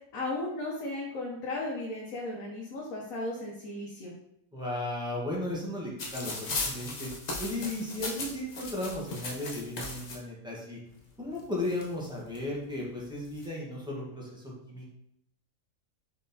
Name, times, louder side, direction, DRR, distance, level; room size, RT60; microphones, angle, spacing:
voice 1, 0.1-4.1, left 2 dB, 75° left, -2 dB, 1.1 m, -35 dB
voice 2, 4.5-7.1 7.4-10.8 11.2-14.9, left 1 dB, 5° right, -4 dB, 0.8 m, -35 dB
sound 1, 6.0-10.2 11.1-11.2 11.4-12.4 13.1-13.5, left 3 dB, 45° left, 0.5 m, -37 dB
4.1 x 3.7 x 2.6 m, 0.78 s
omnidirectional pair, 1.5 m